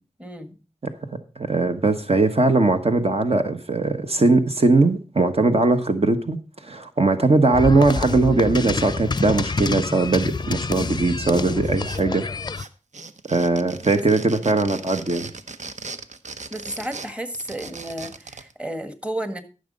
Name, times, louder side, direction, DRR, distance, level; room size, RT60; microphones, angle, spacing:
voice 1, 0.2-0.6 13.9-14.1 16.5-19.4, right 1 dB, 10° right, 1.5 m, -32 dB
voice 2, 1.4-6.4 6.6-12.2 13.3-15.3, right 3 dB, 55° right, 1.1 m, -20 dB
sound 1, 7.5-12.6, left 4 dB, 35° left, 0.5 m, -27 dB
sound 2, 11.6-12.3 12.5-18.5, right 4 dB, 80° right, 0.9 m, -38 dB
13.5 x 6.5 x 5.2 m
wide cardioid pair, 65°, 12 cm